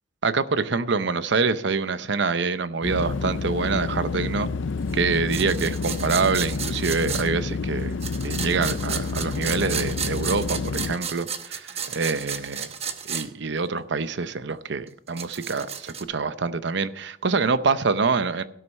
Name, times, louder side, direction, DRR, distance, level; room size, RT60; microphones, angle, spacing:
voice 1, 0.2-4.5 4.9-7.9 8.2-12.7 13.1-18.4, right 4 dB, 65° right, 13 dB, 0.7 m, -25 dB
sound 1, 2.8-11.0, left 4 dB, 75° left, 0.5 m, -29 dB
sound 2, 5.3-7.3 8.0-13.3 13.6-13.7 14.9-16.0, right 7 dB, 35° right, 1.0 m, -33 dB
17.0 x 6.6 x 5.4 m, 0.74 s
head